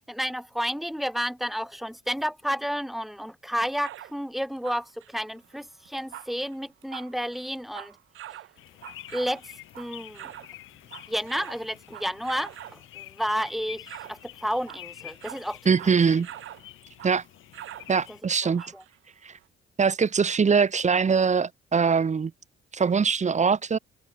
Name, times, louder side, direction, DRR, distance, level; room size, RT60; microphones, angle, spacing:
voice 1, 0.1-8.0 8.3-8.4 9.1-10.3 11.1-15.6 18.1-18.2 18.4-18.8, equal, ahead, 3.0 m, -31 dB
sound 1, 3.8-4.2 4.6-10.5 10.8-12.8 13.3-13.6 13.9-14.2 14.6-16.7 17.0-17.2 17.5-17.9 18.6-19.0 19.4-19.5, right 13 dB, 80° right, 6.0 m, -44 dB
sound 2, 8.6-18.2, left 15 dB, 90° left, 7.8 m, -48 dB
voice 2, 15.6-16.3 17.0-17.2 17.9-18.6 19.2-19.3 19.8-22.3 22.7-23.8, right 5 dB, 35° right, 1.8 m, -22 dB
cardioid pair, 90°, 20 cm